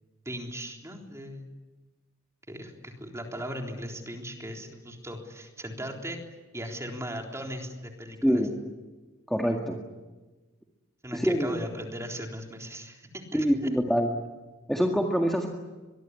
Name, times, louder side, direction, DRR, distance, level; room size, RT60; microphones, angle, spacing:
voice 1, 0.3-1.5 2.5-6.2 6.5-8.5 11.0-13.7, equal, 15° right, 2 dB, 3.8 m, -38 dB
voice 2, 9.3-9.8 11.1-11.5 13.3-14.1 14.7-15.5, equal, ahead, 1 dB, 1.9 m, -25 dB
24.0 x 22.5 x 9.9 m, 1.2 s
head